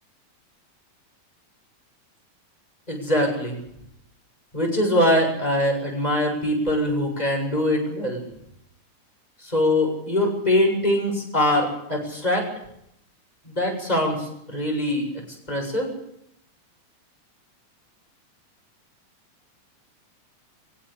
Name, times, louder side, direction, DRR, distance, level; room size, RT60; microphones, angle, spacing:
voice 1, 2.9-3.6 4.5-8.2 9.4-12.5 13.4-15.1 15.5-15.9, left 1 dB, 10° left, 0 dB, 7.5 m, -23 dB
23.0 x 16.5 x 8.6 m, 0.74 s
omnidirectional pair, 3.4 m